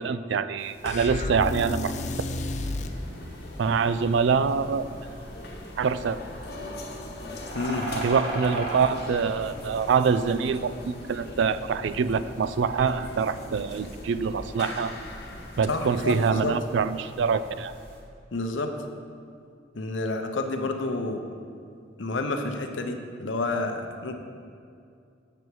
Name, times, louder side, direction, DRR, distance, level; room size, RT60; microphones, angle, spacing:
voice 1, 0.0-1.9 3.6-4.8 5.8-6.2 7.9-14.9 15.6-17.7, right 5 dB, 70° right, 13 dB, 0.3 m, -25 dB
sound 1, 0.6-18.0, right 1 dB, 55° right, 1.6 m, -42 dB
sound 2, 0.8-3.0, left 2 dB, 40° left, 0.4 m, -31 dB
sound 3, 1.4-16.3, left 1 dB, 60° left, 1.2 m, -41 dB
voice 2, 7.5-7.9 15.7-16.5 18.3-18.7 19.7-21.2 22.0-24.1, left 2 dB, 85° left, 5 dB, 0.8 m, -29 dB
7.9 x 6.9 x 4.6 m, 2.4 s
head